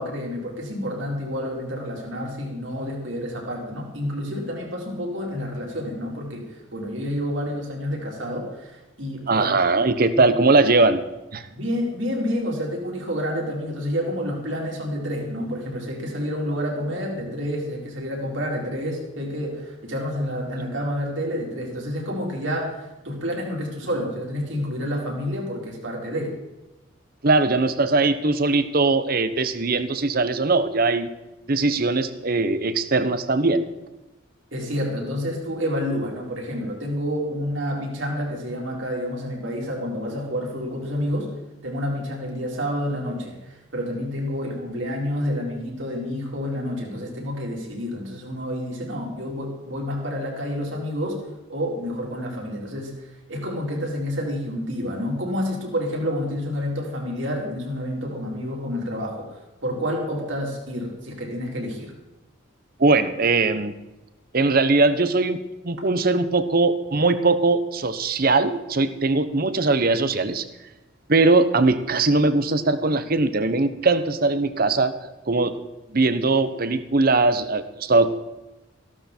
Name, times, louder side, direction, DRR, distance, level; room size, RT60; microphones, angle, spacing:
voice 1, 0.0-9.5 10.1-10.2 11.5-26.4 34.5-41.3 41.6-51.2 51.5-52.9 53.3-61.9, equal, 65° right, -1 dB, 4.0 m, -29 dB
voice 2, 9.3-11.0 11.3-11.4 27.2-31.1 31.5-33.6 62.8-63.7 64.3-65.4 65.6-70.5 71.1-74.9 75.3-75.7 75.9-78.1, right 3 dB, 45° right, 12 dB, 0.9 m, -20 dB
15.5 x 12.5 x 4.4 m, 1.0 s
head